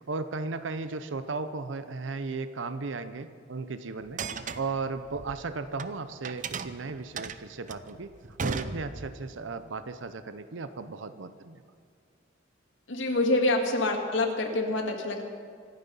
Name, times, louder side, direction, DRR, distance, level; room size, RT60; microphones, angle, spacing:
voice 1, 0.1-4.2 4.6-8.1 8.4-11.6, right 4 dB, 80° right, 11 dB, 0.7 m, -35 dB
sound 1, 4.0-5.9 6.2-9.3, right 4 dB, 40° right, 0.6 m, -36 dB
voice 2, 12.9-15.2, left 2 dB, 85° left, 2 dB, 2.1 m, -26 dB
25.5 x 9.5 x 5.5 m, 2.3 s
head